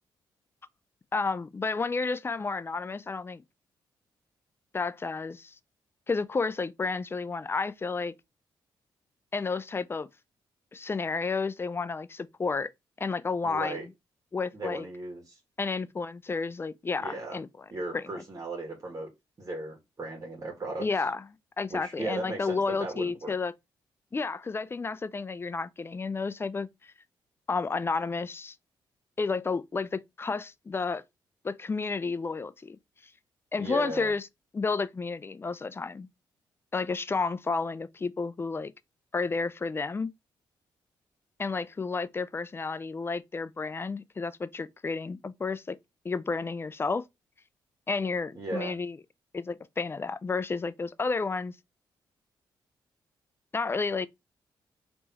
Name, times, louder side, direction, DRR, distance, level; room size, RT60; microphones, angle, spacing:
voice 1, 1.1-3.4 4.7-5.5 6.1-8.1 9.3-10.1 10.7-12.7 13.0-13.9 14.3-14.9 15.6-17.5 17.9-18.2 20.8-21.2 21.6-23.5 24.1-26.9 27.5-28.6 29.2-31.0 31.4-32.8 33.5-34.3 34.5-36.1 36.7-38.7 39.1-40.1 41.4-45.8 46.0-47.1 47.9-49.0 49.3-51.6 53.5-54.1, left 4 dB, 25° left, 0.4 m, -31 dB
voice 2, 13.4-13.9 14.5-15.4 17.0-17.4 17.7-19.1 19.4-20.9 21.7-23.3 33.6-34.1 48.4-48.7, right 2 dB, 35° right, 1.6 m, -36 dB
3.4 x 3.1 x 2.8 m
supercardioid pair, 60°, 9 cm